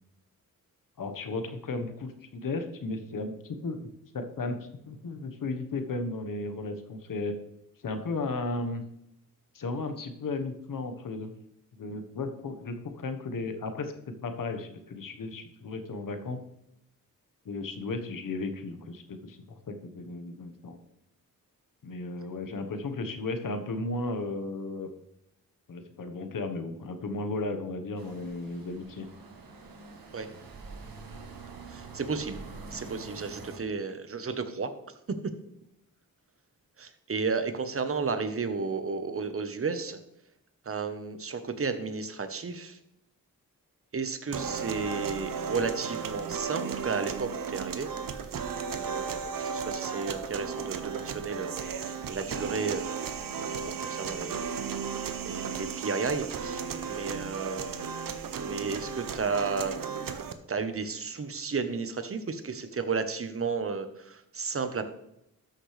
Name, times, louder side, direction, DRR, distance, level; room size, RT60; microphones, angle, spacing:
voice 1, 1.0-3.9 4.1-7.3 7.8-8.8 9.5-11.3 11.8-13.9 14.2-16.4 17.4-20.8 21.8-24.9 25.7-29.1, left 3 dB, 65° left, 7 dB, 1.3 m, -35 dB
sound 1, 28.0-33.6, right 4 dB, 85° right, 1.6 m, -45 dB
voice 2, 31.7-32.4 32.7-34.7 35.1-35.3 36.8-40.0 40.6-42.8 43.9-47.9 48.7-51.5 52.1-53.1 53.8-54.4 55.2-57.9 58.4-59.8 60.5-64.8, right 4 dB, 40° right, 9 dB, 1.1 m, -33 dB
sound 2, 44.3-60.3, right 6 dB, 70° right, 0.9 m, -35 dB
13.0 x 6.5 x 3.4 m, 0.80 s
cardioid pair, 70°, 35 cm